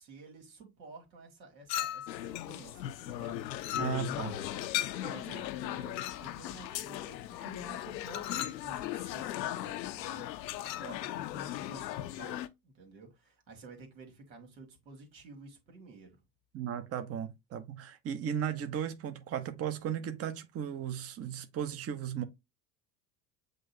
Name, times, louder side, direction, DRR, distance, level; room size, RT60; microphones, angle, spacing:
voice 1, 0.0-3.8 4.1-16.2, right 3 dB, 85° right, 1.9 m, -52 dB
Chink clink, 1.7-2.3 3.6-4.3 6.0-6.3 8.0-8.7 10.6-10.9, left 11 dB, 35° left, 0.6 m, -38 dB
sound 1, 2.1-12.5, left 13 dB, 85° left, 0.6 m, -38 dB
voice 2, 3.8-4.3 16.5-22.2, right 9 dB, 30° right, 0.7 m, -36 dB
7.6 x 2.6 x 2.6 m
hypercardioid pair, 75°, 50 cm